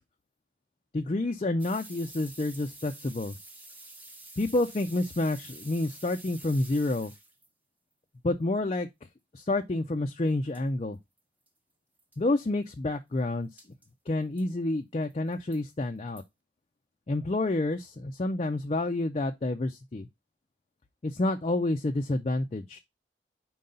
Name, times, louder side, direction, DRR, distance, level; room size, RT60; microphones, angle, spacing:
voice 1, 0.9-3.4 4.4-7.1 8.2-8.9 9.3-11.0 12.2-13.5 14.1-16.2 17.1-20.1 21.0-22.8, left 2 dB, 35° left, 0.4 m, -29 dB
sound 1, 1.6-7.5 10.3-10.4 10.5-10.6 11.2-11.3 11.5-11.6 12.0-12.2 13.6-13.9 14.4-14.5 15.1-15.6 16.2-16.3, right 2 dB, 10° right, 0.8 m, -48 dB
4.7 x 3.9 x 5.3 m
head